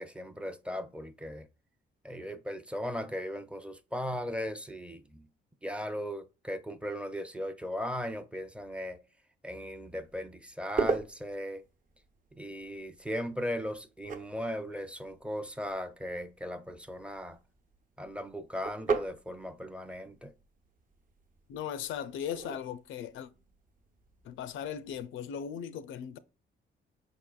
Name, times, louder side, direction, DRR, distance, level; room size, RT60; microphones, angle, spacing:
voice 1, 0.0-1.5 2.0-5.3 5.6-9.0 9.4-11.6 12.4-17.4 18.0-20.3, equal, 5° right, 0.5 m, -37 dB
sound 1, 9.9-25.0, right 4 dB, 40° right, 0.7 m, -41 dB
voice 2, 21.5-23.3 24.2-26.2, left 9 dB, 75° left, 0.4 m, -38 dB
5.4 x 3.6 x 2.3 m
cardioid pair, 90°, 20 cm